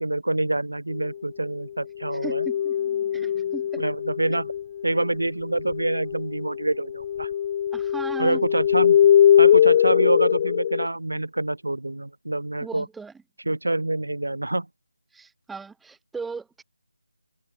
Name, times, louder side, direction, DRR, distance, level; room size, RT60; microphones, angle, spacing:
voice 1, 0.0-2.5 3.8-4.5 4.8-7.3 8.2-9.0 9.4-12.9 13.5-14.7, right 2 dB, 85° right, 3.7 m, -26 dB
sound 1, 2.0-5.1 5.5-10.9, left 9 dB, 25° left, 0.4 m, -21 dB
voice 2, 2.2-2.8 3.1-3.9 7.7-8.5 12.6-13.1 15.1-16.6, right 4 dB, 5° right, 2.1 m, -37 dB
figure-of-eight pair, 160°, 0 cm